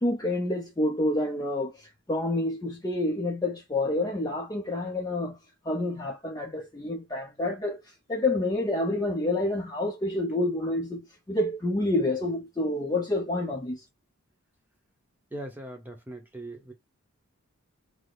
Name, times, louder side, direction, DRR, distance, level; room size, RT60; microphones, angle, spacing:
voice 1, 0.0-5.4 5.7-7.8 8.1-13.8, left 1 dB, 15° left, 0.4 m, -28 dB
voice 2, 15.3-16.7, right 1 dB, 10° right, 0.8 m, -40 dB
4.0 x 2.0 x 3.2 m
head